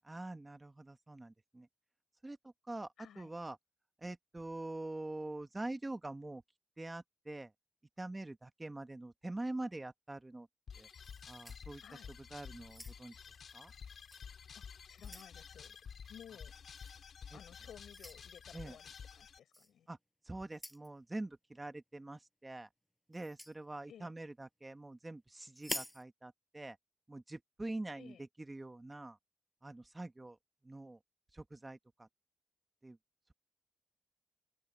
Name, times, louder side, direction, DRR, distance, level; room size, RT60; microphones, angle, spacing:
voice 1, 0.0-1.7 2.2-2.9 3.1-3.6 4.0-6.4 6.8-7.5 8.0-10.5 10.8-10.9 11.3-11.8 12.3-13.1 13.5-13.7 17.3-17.4 18.5-18.8 19.9-20.0 20.2-22.7 23.1-26.8 27.1-29.2 29.6-30.4 30.6-31.0 31.3-32.1 32.8-33.0, right 2 dB, 15° right, 1.5 m, -45 dB
voice 2, 3.0-3.4 11.8-12.1 14.5-15.8 16.1-16.5 17.3-19.9 23.9-24.1 27.9-28.2, left 9 dB, 75° left, 6.6 m, -56 dB
sound 1, 10.7-19.4, left 6 dB, 60° left, 2.6 m, -51 dB
sound 2, 11.0-12.2 12.6-13.3 14.1-14.3 14.7-15.4 16.8-17.0 17.9-18.2 19.5-19.7 20.5-20.9 23.1-23.6 25.6-26.0, equal, 5° left, 6.0 m, -46 dB
open air
cardioid pair, 95°, 0 cm